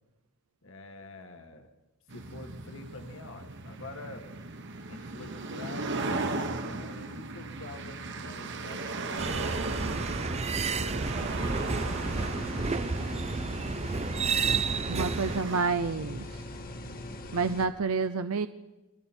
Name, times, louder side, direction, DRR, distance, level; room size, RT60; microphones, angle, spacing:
voice 1, 0.6-1.7 2.1-4.3 4.9-9.7 10.2-12.6, left 2 dB, 60° left, 6 dB, 1.9 m, -47 dB
sound 1, 2.1-15.6, right 3 dB, 55° right, 1.5 m, -37 dB
sound 2, 9.2-15.4, right 4 dB, 30° right, 0.6 m, -31 dB
sound 3, 11.1-17.7, left 1 dB, 40° left, 1.7 m, -41 dB
voice 2, 14.8-16.4 17.3-18.5, right 4 dB, 70° right, 10 dB, 0.7 m, -29 dB
30.0 x 22.0 x 4.5 m, 1.1 s
head